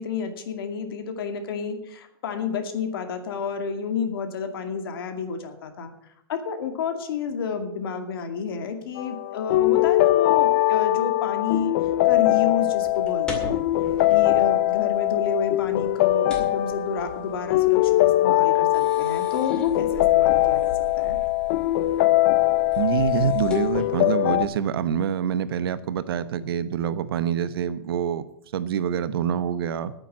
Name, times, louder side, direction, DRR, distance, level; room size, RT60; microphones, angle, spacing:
voice 1, 0.0-5.9 6.3-11.7 12.0-13.6 14.1-21.2, left 6 dB, 70° left, 6 dB, 2.3 m, -30 dB
sound 1, 9.0-24.5, left 15 dB, 40° left, 0.4 m, -21 dB
sound 2, 12.6-24.0, equal, 5° left, 2.3 m, -41 dB
voice 2, 22.8-28.2 28.5-29.9, right 8 dB, 75° right, 13 dB, 1.0 m, -26 dB
9.1 x 9.0 x 8.7 m, 0.77 s
supercardioid pair, 165°, 13 cm